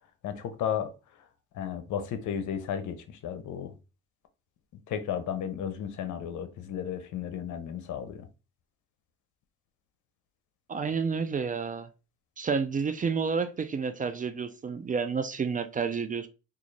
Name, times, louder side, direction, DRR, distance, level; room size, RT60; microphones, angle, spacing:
voice 1, 0.2-0.9 1.5-3.7 4.9-8.3, left 8 dB, 75° left, 0.7 m, -34 dB
voice 2, 10.7-11.9 12.4-16.3, right 5 dB, 25° right, 0.4 m, -30 dB
3.7 x 2.4 x 3.2 m
cardioid pair, 90°, 30 cm